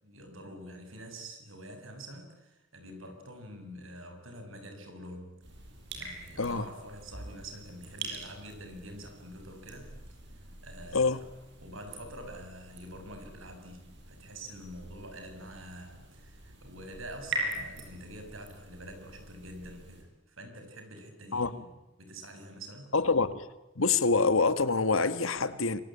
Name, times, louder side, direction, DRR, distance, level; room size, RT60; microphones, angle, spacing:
voice 1, 0.0-5.4 5.9-9.9 10.6-11.3 11.6-21.7 22.0-22.9, right 1 dB, 80° right, 6.8 m, -46 dB
sound 1, 5.4-20.0, right 2 dB, 60° right, 7.6 m, -43 dB
voice 2, 22.9-23.5 23.8-25.8, left 4 dB, 85° left, 1.7 m, -26 dB
26.5 x 24.5 x 8.9 m
head